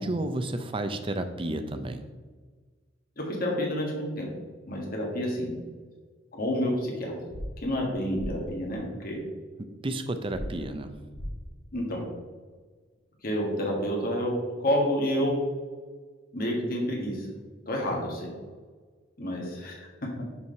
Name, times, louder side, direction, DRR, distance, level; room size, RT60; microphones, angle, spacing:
voice 1, 0.0-2.1 9.8-11.0, right 1 dB, 30° right, 8 dB, 0.5 m, -31 dB
voice 2, 3.2-4.3 4.7-5.5 6.3-7.1 7.6-9.2 11.7-12.0 13.2-15.4 16.3-17.3 17.7-18.3 19.2-19.9, equal, 50° left, -1 dB, 1.8 m, -29 dB
sound 1, 7.3-7.4 8.1-8.3 10.3-10.4 11.1-11.3, equal, 30° left, 1.1 m, -35 dB
5.8 x 4.7 x 5.7 m, 1.4 s
head